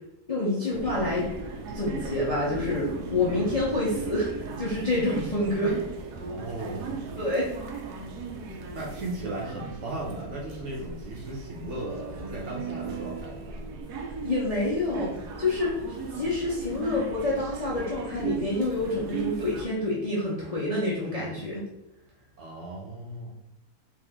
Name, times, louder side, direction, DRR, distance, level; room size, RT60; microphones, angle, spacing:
voice 1, 0.3-1.3 1.7-5.8 7.2-7.5 14.2-15.8 16.1-21.7, left 2 dB, 40° left, -7 dB, 0.5 m, -27 dB
sound 1, 0.7-19.6, right 5 dB, 85° right, 1.2 m, -37 dB
voice 2, 6.3-7.0 8.7-13.6 22.4-23.3, right 1 dB, 60° right, -2 dB, 0.9 m, -36 dB
3.6 x 2.5 x 3.5 m, 0.94 s
omnidirectional pair, 1.7 m